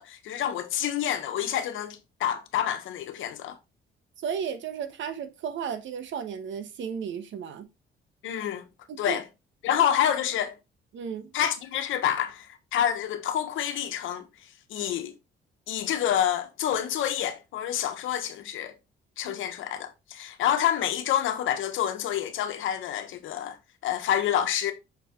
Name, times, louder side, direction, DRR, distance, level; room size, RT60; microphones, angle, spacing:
voice 1, 0.0-3.6 8.2-8.6 9.0-9.3 9.6-10.5 11.3-14.3 14.7-15.1 15.7-18.7 19.2-23.6 23.8-24.7, left 10 dB, 85° left, 1.1 m, -28 dB
voice 2, 4.2-7.7 8.9-9.2 9.7-9.9 10.9-11.3 19.3-19.4, right 7 dB, 70° right, 1.1 m, -34 dB
6.5 x 4.3 x 3.6 m
cardioid pair, 90°, 20 cm